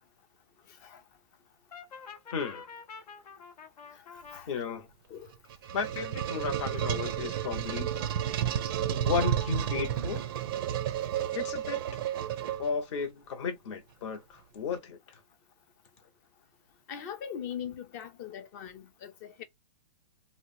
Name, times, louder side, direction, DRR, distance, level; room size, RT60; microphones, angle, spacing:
Brass instrument, 1.7-4.4, left 5 dB, 80° left, 0.9 m, -47 dB
voice 1, 2.3-2.6 4.5-4.9 5.7-7.9 8.9-10.2 11.3-11.8 12.6-15.2, left 6 dB, 50° left, 1.0 m, -34 dB
sound 1, 5.3-13.0, right 10 dB, 35° right, 0.4 m, -31 dB
voice 2, 16.9-19.4, left 8 dB, 25° left, 0.5 m, -41 dB
2.9 x 2.0 x 2.6 m
hypercardioid pair, 160°, 20 cm